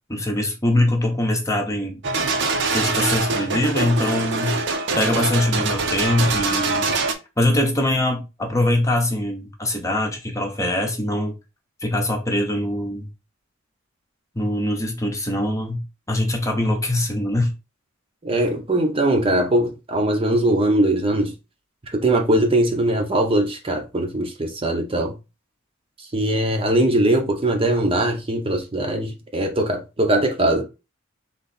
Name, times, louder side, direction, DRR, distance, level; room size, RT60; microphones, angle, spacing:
voice 1, 0.1-2.0 2.7-4.6 5.0-6.9 7.4-11.3 11.8-13.1 14.3-15.8 16.1-17.5, left 1 dB, 15° left, 0.9 m, -22 dB
sound 1, 2.0-7.1, right 3 dB, 60° right, 0.8 m, -23 dB
voice 2, 18.2-21.3 21.8-25.1 26.1-30.6, right 1 dB, 25° right, 0.8 m, -21 dB
3.9 x 3.0 x 4.2 m
head